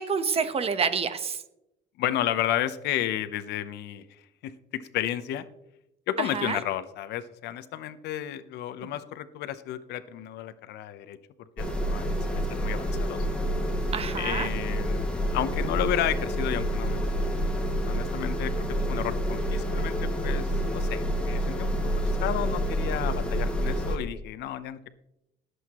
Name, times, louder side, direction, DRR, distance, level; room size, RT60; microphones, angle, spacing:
voice 1, 0.0-1.4 6.2-6.6 13.9-14.5, right 6 dB, 35° right, 11 dB, 1.1 m, -28 dB
voice 2, 2.0-4.0 4.4-5.4 6.1-11.2 11.6-13.2 14.2-17.1 17.9-18.5 18.8-24.9, left 12 dB, 80° left, 12 dB, 0.8 m, -32 dB
sound 1, 11.6-24.0, equal, 5° left, 2.0 m, -28 dB
22.0 x 8.0 x 3.0 m, 0.86 s
cardioid pair, 110°, 17 cm